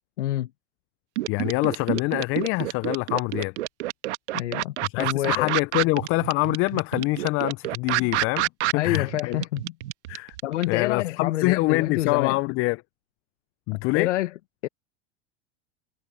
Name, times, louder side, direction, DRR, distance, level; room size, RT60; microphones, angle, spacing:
voice 1, 0.2-0.5 4.3-5.5 8.7-9.6 10.4-12.4 13.9-14.3 14.6-14.7, left 15 dB, 85° left, 1.0 m, -27 dB
sound 1, 1.2-10.6, right 16 dB, 75° right, 1.3 m, -27 dB
voice 2, 1.3-3.5 4.9-9.4 10.1-10.4 10.7-12.8 13.7-14.1, left 23 dB, 40° left, 0.4 m, -25 dB
hypercardioid pair, 110°, 35 cm